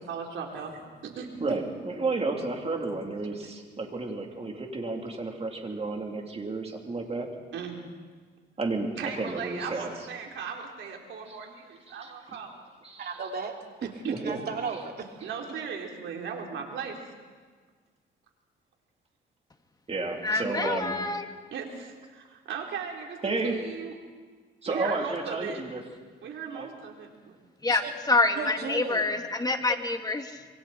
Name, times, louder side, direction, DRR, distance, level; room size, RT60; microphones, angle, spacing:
voice 1, 0.1-1.6 7.5-7.8 9.0-12.6 14.0-14.2 15.2-17.0 21.5-24.0 24.7-25.6 26.2-27.4, right 6 dB, 75° right, 1 dB, 3.8 m, -37 dB
voice 2, 1.4-7.3 8.6-9.9 11.3-11.4 11.9-12.1 12.8-13.1 14.2-14.4 19.9-20.9 23.2-23.6 24.6-25.8 26.5-26.7, right 3 dB, 30° right, 1 dB, 3.4 m, -32 dB
voice 3, 13.0-13.9 14.2-15.1 27.7-27.9 28.4-29.0, right 5 dB, 55° right, 2 dB, 3.1 m, -35 dB
voice 4, 20.2-21.3 27.6-30.5, left 3 dB, 20° left, 5 dB, 2.0 m, -27 dB
26.5 x 23.0 x 4.4 m, 1.5 s
cardioid pair, 90°, 20 cm